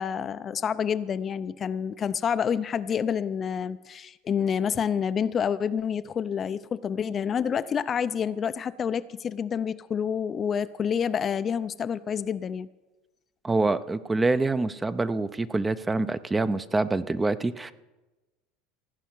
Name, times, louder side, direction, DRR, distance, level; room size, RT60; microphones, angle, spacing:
voice 1, 0.0-12.7, left 7 dB, 35° left, 13 dB, 0.5 m, -28 dB
voice 2, 13.4-17.7, right 3 dB, 15° right, 14 dB, 0.6 m, -26 dB
16.0 x 5.5 x 9.3 m, 1.1 s
supercardioid pair, 100°, 0 cm